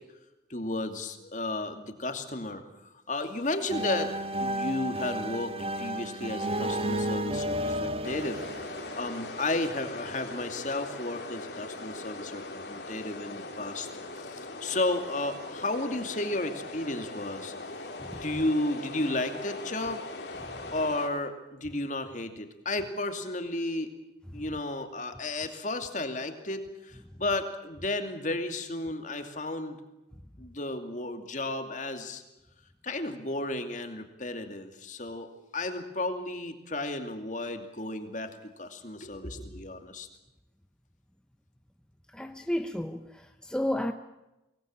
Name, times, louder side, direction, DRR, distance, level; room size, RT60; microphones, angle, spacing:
voice 1, 0.5-2.6 3.1-4.1 4.4-8.4 8.9-13.9 14.3-17.5 18.2-20.0 20.7-23.9 24.3-29.8 30.4-32.2 32.8-40.1, left 2 dB, 45° left, 2.6 m, -33 dB
sound 1, 3.7-9.4, right 1 dB, 35° right, 1.3 m, -32 dB
sound 2, 8.0-21.1, left 2 dB, 65° left, 3.6 m, -40 dB
voice 2, 42.1-43.9, left 1 dB, 5° left, 0.8 m, -32 dB
24.5 x 19.5 x 8.9 m
head